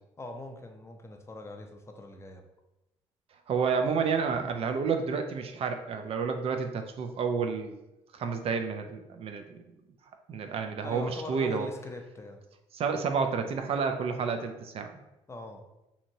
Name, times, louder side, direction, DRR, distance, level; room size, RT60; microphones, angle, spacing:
voice 1, 0.2-2.4 10.8-12.4 15.3-15.6, left 2 dB, 20° left, 4 dB, 0.5 m, -42 dB
voice 2, 3.5-7.8 8.1-9.6 10.3-11.7 12.7-14.9, right 5 dB, 55° right, 6 dB, 0.4 m, -30 dB
2.9 x 2.7 x 2.6 m, 0.94 s
supercardioid pair, 70°, 12 cm